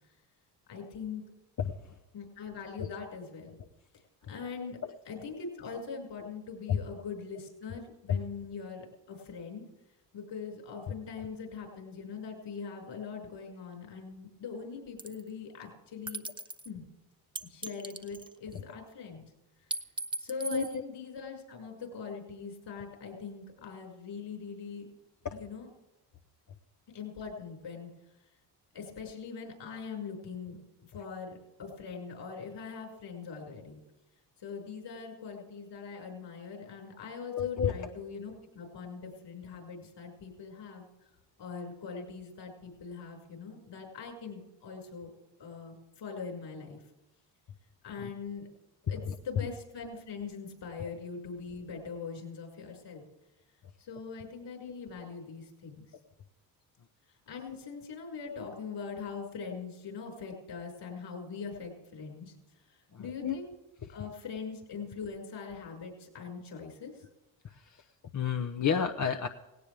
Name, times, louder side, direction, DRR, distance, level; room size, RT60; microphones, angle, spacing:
voice 1, 0.7-1.2 2.1-3.6 3.9-4.0 4.3-4.8 5.1-9.6 10.1-16.3 16.6-16.8 17.4-19.3 20.2-24.9 25.3-25.7 26.9-27.9 28.7-30.6 30.9-33.8 34.4-40.8 41.4-45.1 45.4-46.8 47.8-48.5 48.9-53.0 53.8-55.9 57.3-62.3 63.0-63.5 63.9-67.0, left 5 dB, 60° left, 0 dB, 5.8 m, -42 dB
voice 2, 1.6-1.9 4.6-4.9 6.7-6.8 8.1-8.2 18.5-18.6 20.5-20.8 25.2-25.4 37.3-37.7 48.0-48.1 49.1-49.2 62.9-63.4 67.4-67.8 68.1-69.3, left 7 dB, 35° left, 6 dB, 1.0 m, -31 dB
sound 1, 15.0-15.3 16.1-16.7 17.4-18.6 19.7-20.8, right 2 dB, 10° right, 1.0 m, -38 dB
18.0 x 17.5 x 3.5 m, 1.0 s
supercardioid pair, 60°, 48 cm